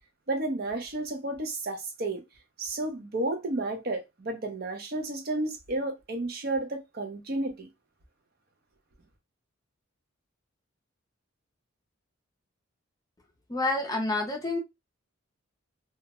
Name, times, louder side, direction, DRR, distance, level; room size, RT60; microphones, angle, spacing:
voice 1, 0.3-2.2 2.6-7.7, right 2 dB, 45° right, 0.5 m, -32 dB
voice 2, 13.5-14.6, left 2 dB, 20° left, 0.5 m, -28 dB
2.2 x 2.0 x 2.8 m
head